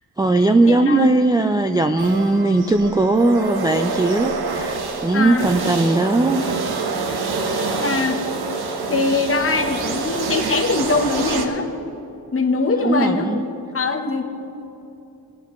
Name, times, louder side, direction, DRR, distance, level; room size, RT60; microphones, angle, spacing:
voice 1, 0.2-6.5 12.8-13.4, right 2 dB, 10° right, 4 dB, 0.3 m, -18 dB
voice 2, 0.7-1.2 5.1-5.5 7.8-8.2 8.9-11.7 12.3-13.3 13.7-14.2, left 3 dB, 35° left, 4 dB, 1.0 m, -22 dB
sound 1, 2.0-11.5, right 4 dB, 70° right, 1.1 m, -26 dB
20.0 x 9.3 x 3.1 m, 2.8 s
cardioid pair, 95°, 39 cm